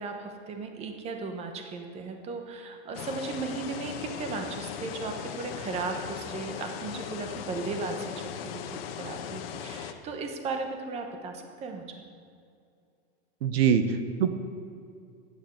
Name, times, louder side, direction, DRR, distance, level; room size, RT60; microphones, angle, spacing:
voice 1, 0.0-11.8, right 4 dB, 20° right, 5 dB, 1.1 m, -36 dB
sound 1, 2.9-9.9, left 9 dB, 65° left, 1.1 m, -38 dB
voice 2, 13.4-14.3, right 7 dB, 70° right, 10 dB, 1.1 m, -24 dB
11.5 x 9.5 x 7.9 m, 2.4 s
supercardioid pair, 165°, 32 cm